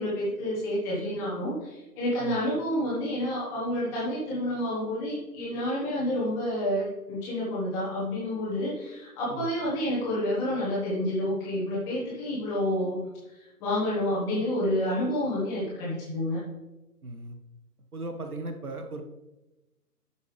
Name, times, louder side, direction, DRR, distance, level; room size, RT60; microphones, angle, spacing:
voice 1, 0.0-13.0 13.3-16.4, left 1 dB, 5° left, -8 dB, 1.1 m, -29 dB
voice 2, 17.0-17.4 17.9-19.0, right 2 dB, 65° right, 5 dB, 1.3 m, -37 dB
12.5 x 5.7 x 3.3 m, 1.0 s
figure-of-eight pair, 145°, 48 cm